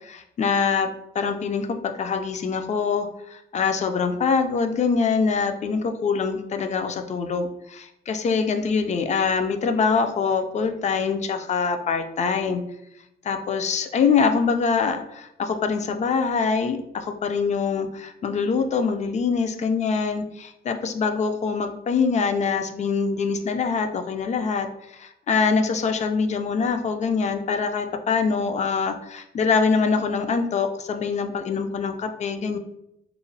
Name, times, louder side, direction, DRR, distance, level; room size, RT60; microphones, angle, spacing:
voice 1, 0.0-12.6 13.2-24.7 24.9-32.6, left 5 dB, 35° left, 7 dB, 0.3 m, -24 dB
2.9 x 2.1 x 2.6 m, 0.81 s
cardioid pair, 90°, 20 cm